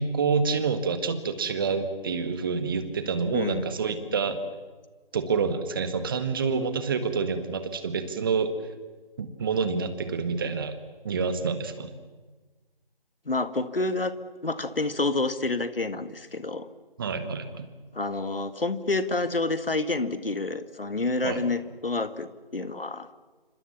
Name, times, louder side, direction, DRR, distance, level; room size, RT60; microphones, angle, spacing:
voice 1, 0.0-4.4 5.1-8.5 9.2-10.8 11.0-11.9 17.0-17.7 21.2-21.4, right 5 dB, 25° right, 10 dB, 1.8 m, -27 dB
voice 2, 3.3-3.7 13.3-14.1 14.4-16.7 17.9-23.1, left 3 dB, 70° left, 12 dB, 2.1 m, -28 dB
28.5 x 26.0 x 7.2 m, 1.3 s
figure-of-eight pair, 155°, 29 cm